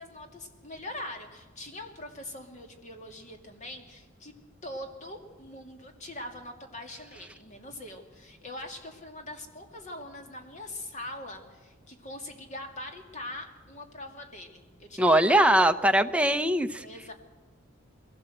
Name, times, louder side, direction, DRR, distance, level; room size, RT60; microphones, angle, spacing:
voice 1, 0.0-4.3 4.6-15.5 15.9-16.4 16.8-17.1, left 1 dB, 35° left, 4 dB, 2.6 m, -42 dB
voice 2, 15.0-16.8, right 1 dB, 5° right, 7 dB, 0.7 m, -21 dB
21.5 x 16.5 x 7.9 m, 1.2 s
head